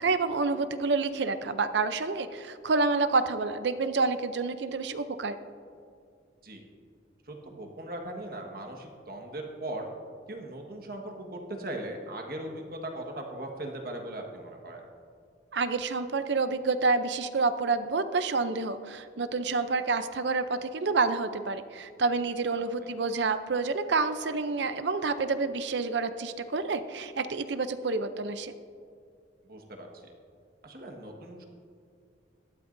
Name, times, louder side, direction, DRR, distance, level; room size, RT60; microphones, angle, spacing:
voice 1, 0.0-5.4 15.5-28.5, right 4 dB, 70° right, 10 dB, 0.6 m, -28 dB
voice 2, 7.3-9.9 10.3-14.8 22.8-22.9 29.5-29.9 30.6-31.4, right 1 dB, 50° right, 2 dB, 1.5 m, -39 dB
19.0 x 13.0 x 2.7 m, 2.3 s
head